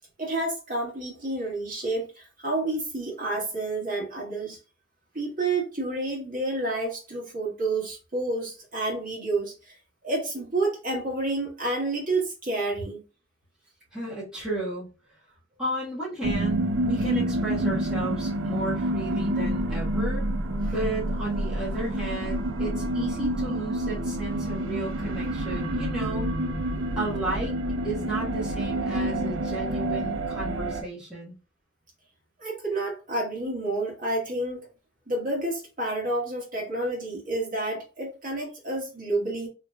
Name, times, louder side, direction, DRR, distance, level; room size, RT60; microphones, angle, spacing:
voice 1, 0.2-2.1 2.4-4.6 5.1-9.5 10.0-13.0 20.6-20.7 32.4-34.7 35.1-39.5, right 2 dB, 40° right, 1.6 m, -29 dB
voice 2, 13.9-14.9 15.6-20.3 20.7-26.3 27.0-27.5 27.8-31.3, right 1 dB, 5° right, 1.4 m, -33 dB
sound 1, 16.2-30.8, right 1 dB, 85° right, 0.6 m, -28 dB
3.8 x 3.1 x 2.3 m
head